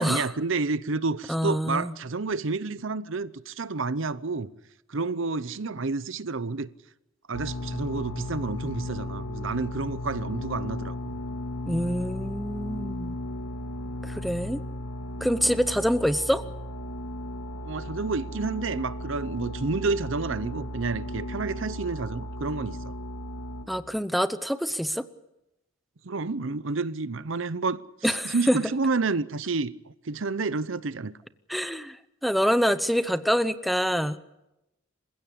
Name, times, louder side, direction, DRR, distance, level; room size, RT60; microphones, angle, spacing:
voice 1, 0.0-4.5 4.9-6.7 7.3-11.2 15.4-15.6 17.6-22.9 26.0-27.8 28.1-29.7 30.0-31.1, right 3 dB, 65° right, 0.8 m, -29 dB
voice 2, 1.3-1.9 11.7-13.2 14.0-14.6 15.2-16.4 23.7-25.0 28.0-28.6 31.5-32.0 32.2-34.2, equal, ahead, 0.7 m, -26 dB
sound 1, 7.3-23.7, left 1 dB, 90° left, 2.2 m, -35 dB
28.0 x 16.0 x 8.6 m
head